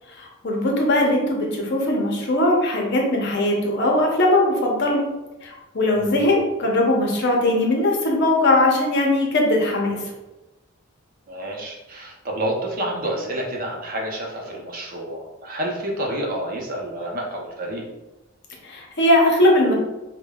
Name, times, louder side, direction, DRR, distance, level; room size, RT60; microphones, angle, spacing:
voice 1, 0.2-5.0 5.4-10.0 18.6-19.7, left 1 dB, 55° left, 0 dB, 0.7 m, -20 dB
voice 2, 5.9-6.4 11.3-17.8, right 1 dB, 45° right, -1 dB, 0.7 m, -29 dB
5.2 x 2.2 x 2.3 m, 1.0 s
head